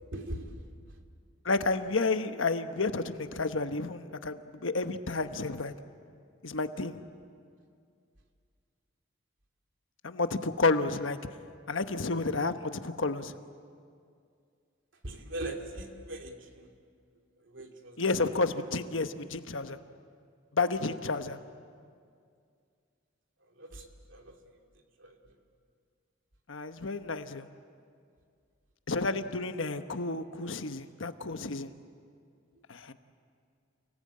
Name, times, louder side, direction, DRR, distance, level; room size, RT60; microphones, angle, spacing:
voice 1, 0.1-0.5 15.0-16.7 17.5-18.0 23.6-24.3 25.0-25.2, right 1 dB, 70° right, 3 dB, 2.7 m, -40 dB
voice 2, 1.4-5.7 6.4-7.0 10.0-11.2 11.7-13.4 18.0-19.8 20.5-21.4 26.5-27.5 28.9-31.7 32.7-32.9, left 3 dB, 75° left, 9 dB, 1.1 m, -31 dB
30.0 x 19.0 x 8.7 m, 2.3 s
head